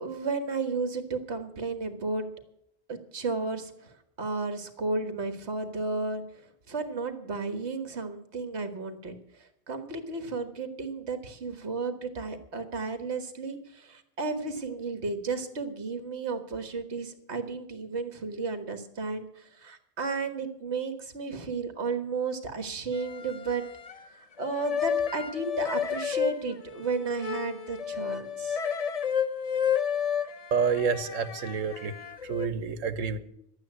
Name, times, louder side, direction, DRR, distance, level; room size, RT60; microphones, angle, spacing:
voice 1, 0.0-2.3 2.9-23.6 24.1-28.6, right 4 dB, 60° right, 8 dB, 1.7 m, -33 dB
sound 1, 22.9-24.1 24.4-32.5, left 7 dB, 40° left, 0.6 m, -31 dB
voice 2, 30.5-31.9 32.2-33.2, right 6 dB, 85° right, 12 dB, 1.4 m, -28 dB
12.0 x 8.9 x 9.4 m, 0.74 s
omnidirectional pair, 1.3 m